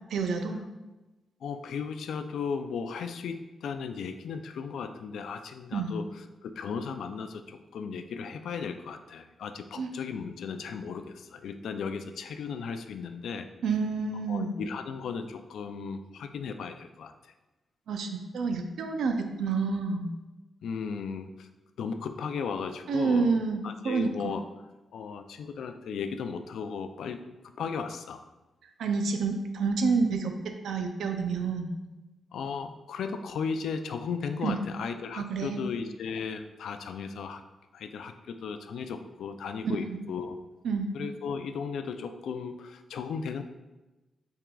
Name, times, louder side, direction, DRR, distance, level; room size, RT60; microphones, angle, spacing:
voice 1, 0.1-0.6 5.7-5.9 9.8-9.9 13.6-14.5 17.9-20.1 22.9-24.3 28.8-31.7 34.4-34.6 35.2-35.6 39.9-40.0 40.6-40.9, right 4 dB, 85° right, 5 dB, 0.5 m, -29 dB
voice 2, 1.4-6.0 6.4-13.5 14.3-17.3 20.6-21.5 21.8-23.3 23.6-24.4 24.9-27.2 27.6-28.2 32.3-37.4 37.7-40.4 40.9-43.4, left 6 dB, 85° left, 8 dB, 0.3 m, -36 dB
5.9 x 3.7 x 2.3 m, 1.1 s
cardioid pair, 95°, 0 cm